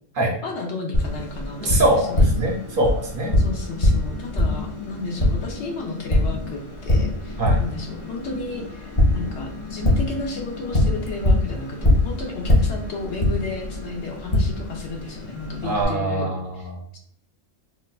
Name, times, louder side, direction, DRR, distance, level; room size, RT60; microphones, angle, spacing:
voice 1, 0.4-2.4 3.4-16.7, left 2 dB, 60° left, 1 dB, 0.9 m, -33 dB
Tap, 0.9-15.8, left 1 dB, 35° left, 0.5 m, -23 dB
voice 2, 1.6-3.3 7.4-7.6 15.6-16.8, right 1 dB, 55° right, 0 dB, 0.7 m, -23 dB
4.0 x 2.4 x 2.3 m, 0.65 s
omnidirectional pair, 1.4 m